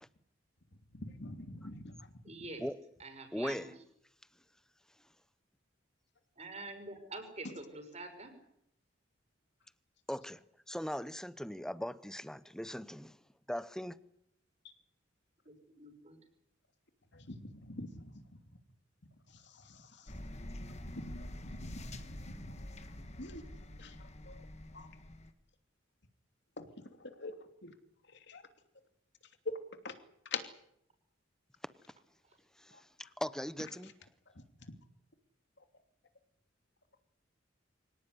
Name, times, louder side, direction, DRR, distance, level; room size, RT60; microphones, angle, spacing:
voice 1, 0.9-2.1 17.1-18.4 19.3-20.1 20.9-22.7 23.2-23.4 23.8-24.4 24.7-24.9 26.6-27.4 27.6-27.7 28.1-28.4 29.8-29.9 30.3-30.4 32.7-32.8 33.6-33.9 34.3-34.7, left 3 dB, 60° left, 7 dB, 2.9 m, -46 dB
voice 2, 2.2-2.6 3.0-3.7 6.4-8.3 15.5-16.2, right 2 dB, 35° right, 4 dB, 6.2 m, -46 dB
voice 3, 3.3-3.7 10.1-10.4 10.7-13.2 13.5-14.0 32.6-32.7 33.2-33.9, equal, 5° left, 15 dB, 0.9 m, -39 dB
sound 1, 20.1-25.3, left 1 dB, 35° left, 1.7 m, -46 dB
24.5 x 18.0 x 10.0 m, 0.75 s
head